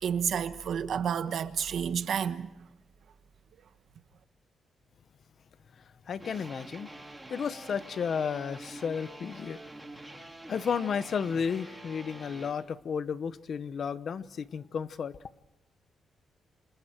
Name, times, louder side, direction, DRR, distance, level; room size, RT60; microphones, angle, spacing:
voice 1, 0.0-2.5, right 8 dB, 65° right, 1.3 m, -30 dB
voice 2, 5.7-6.9 7.3-9.6 10.5-15.2, left 6 dB, 55° left, 1.0 m, -33 dB
sound 1, 6.2-12.5, right 1 dB, 5° right, 3.9 m, -46 dB
29.5 x 26.5 x 4.6 m
cardioid pair, 140°, 0 cm